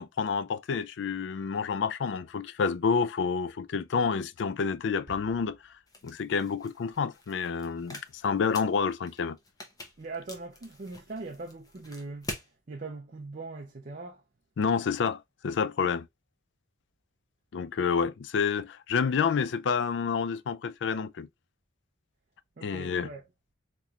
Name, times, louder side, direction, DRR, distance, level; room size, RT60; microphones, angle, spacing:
voice 1, 0.0-5.6 6.0-9.4 14.6-16.1 17.5-21.3 22.6-23.1, left 6 dB, 65° left, 0.4 m, -29 dB
Bass drum, 5.1-6.5, right 1 dB, 75° right, 1.0 m, -54 dB
sound 1, 5.9-12.5, left 1 dB, 20° left, 0.7 m, -46 dB
voice 2, 10.0-12.4 12.7-14.2 22.6-23.2, right 3 dB, 45° right, 0.5 m, -41 dB
4.1 x 3.1 x 2.3 m
head